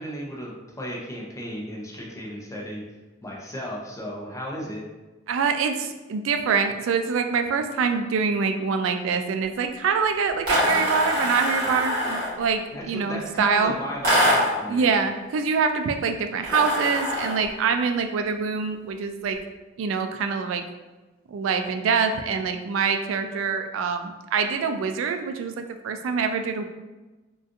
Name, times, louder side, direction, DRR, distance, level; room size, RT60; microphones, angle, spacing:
voice 1, 0.0-2.8 3.2-4.8 12.7-14.9, equal, 15° left, -3 dB, 0.6 m, -34 dB
voice 2, 5.3-12.6 12.9-13.7 14.7-19.4 19.8-20.6 21.3-26.7, right 5 dB, 90° right, 7 dB, 0.3 m, -25 dB
sound 1, 10.4-12.4 14.0-14.6 16.4-17.5, equal, 50° right, 1.5 m, -23 dB
3.7 x 2.4 x 2.5 m, 1.2 s
head